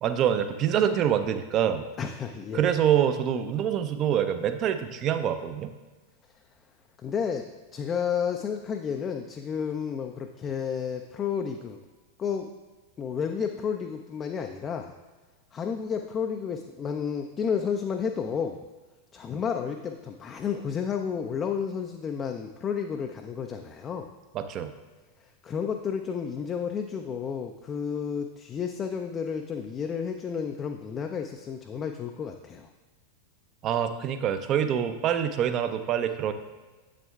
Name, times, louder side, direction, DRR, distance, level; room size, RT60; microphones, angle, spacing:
voice 1, 0.0-1.8 2.5-5.7 24.3-24.7 33.6-36.3, right 9 dB, 35° right, 9 dB, 0.5 m, -25 dB
voice 2, 2.0-2.8 7.0-11.8 12.2-12.5 13.0-14.9 15.5-18.6 19.1-24.1 25.4-32.7, left 7 dB, 25° left, 4 dB, 0.3 m, -31 dB
7.7 x 7.3 x 2.3 m, 1.3 s
figure-of-eight pair, 90°, 0 cm